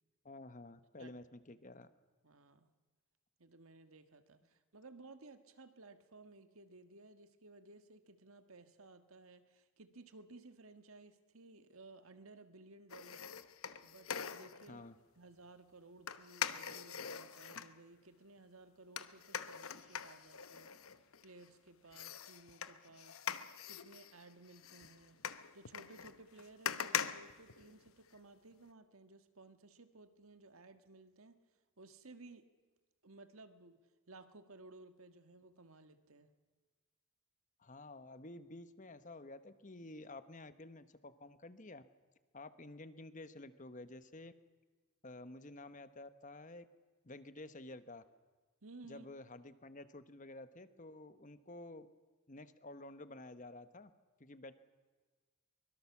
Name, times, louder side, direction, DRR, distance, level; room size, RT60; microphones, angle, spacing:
voice 1, 0.2-1.9 14.7-15.0 37.6-41.8 42.3-44.3 45.0-46.6 47.0-48.0 48.9-51.9 52.3-53.9 54.2-54.5, left 2 dB, 35° left, 12 dB, 1.1 m, -51 dB
voice 2, 2.2-2.7 3.4-13.2 13.8-14.9 15.1-21.0 21.2-31.4 31.8-32.5 33.0-33.8 34.1-36.3 48.6-49.1, right 2 dB, 75° right, 9 dB, 1.6 m, -58 dB
sound 1, 12.9-14.7 16.1-17.7 19.0-21.5 21.9-28.1 28.5-28.6, left 8 dB, 75° left, 1.0 m, -43 dB
23.5 x 22.0 x 7.2 m, 1.4 s
head